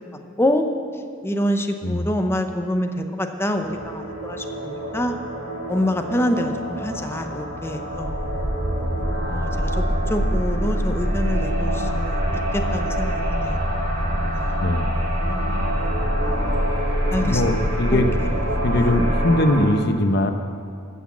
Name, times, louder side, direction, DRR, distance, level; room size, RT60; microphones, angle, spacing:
voice 1, 1.2-2.9 3.2-5.1 5.7-8.1 9.3-9.7 10.1-12.2 12.7-13.6 14.3-14.5 15.2-15.5 17.1-17.6 17.9-18.0, left 1 dB, 10° left, 5 dB, 0.8 m, -26 dB
sound 1, 3.5-19.7, right 1 dB, 80° right, 3.3 m, -29 dB
sound 2, 7.9-19.2, equal, 50° right, 2.8 m, -25 dB
voice 2, 14.6-15.0 17.2-18.1 18.6-20.3, left 1 dB, 55° left, 7 dB, 0.9 m, -21 dB
15.0 x 6.3 x 7.3 m, 2.4 s
head